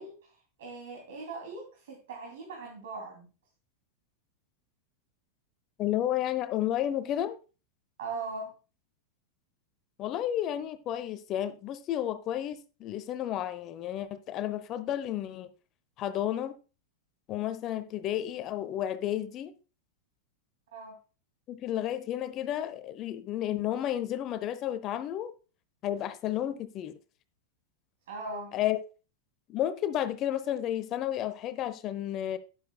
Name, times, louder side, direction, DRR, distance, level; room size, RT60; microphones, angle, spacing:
voice 1, 0.0-3.3 8.0-8.5 20.7-21.0 28.1-28.5, right 3 dB, 60° right, 2.9 m, -40 dB
voice 2, 5.8-7.4 10.0-15.5 16.0-16.6 17.3-19.5 21.5-25.3 25.8-26.9 28.5-28.8 29.5-32.4, left 11 dB, 35° left, 0.8 m, -32 dB
12.5 x 10.0 x 2.3 m
figure-of-eight pair, 90°, 0 cm